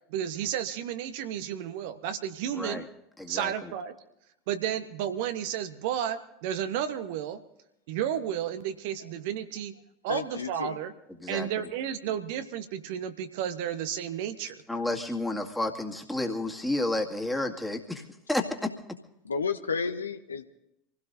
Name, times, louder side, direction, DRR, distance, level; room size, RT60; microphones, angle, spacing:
voice 1, 0.1-2.9 3.3-3.9 4.5-7.4 7.9-10.9 11.3-14.6, right 9 dB, 55° right, 9 dB, 1.1 m, -32 dB
voice 2, 2.5-2.9 3.2-3.7 11.2-11.5 14.7-18.7, left 2 dB, 5° left, 2 dB, 2.1 m, -31 dB
voice 3, 10.1-10.8 19.2-20.4, left 5 dB, 75° left, 9 dB, 0.9 m, -31 dB
26.5 x 16.5 x 2.7 m, 0.80 s
figure-of-eight pair, 75°, 0 cm